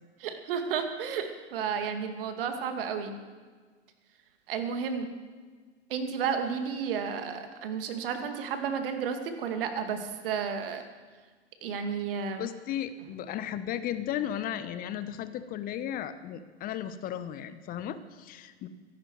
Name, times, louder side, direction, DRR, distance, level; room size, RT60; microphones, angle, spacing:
voice 1, 0.2-3.1 4.5-5.1 5.9-10.8 11.6-12.5, right 6 dB, 50° right, 7 dB, 2.2 m, -32 dB
voice 2, 12.4-18.7, left 10 dB, 25° left, 12 dB, 0.9 m, -35 dB
24.0 x 11.0 x 4.8 m, 1.5 s
figure-of-eight pair, 100°, 34 cm